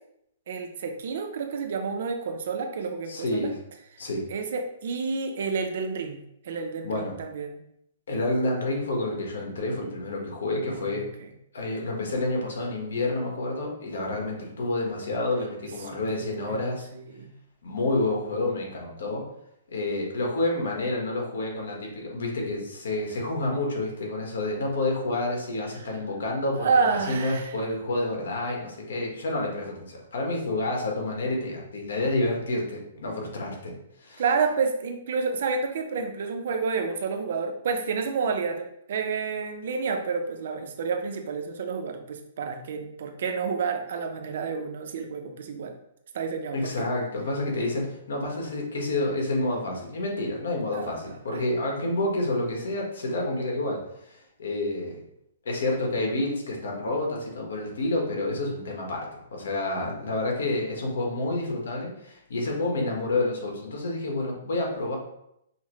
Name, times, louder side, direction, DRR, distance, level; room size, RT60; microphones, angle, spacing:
voice 1, 0.5-3.5 4.3-6.2 6.4-7.6 10.7-11.3 15.9-16.0 16.4-17.3 25.8-25.9 26.6-27.5 34.2-45.7 46.1-46.9 50.7-51.0 51.3-51.4, right 5 dB, 45° right, 5 dB, 0.5 m, -29 dB
voice 2, 3.1-3.6 4.0-4.2 6.8-7.2 8.1-11.0 11.5-16.9 17.6-19.2 19.7-33.7 34.0-34.2 46.5-53.8 54.1-55.0 55.4-59.0 59.3-65.0, left 2 dB, 80° left, 0 dB, 1.2 m, -29 dB
5.6 x 2.1 x 3.0 m, 0.78 s
hypercardioid pair, 180°, 0 cm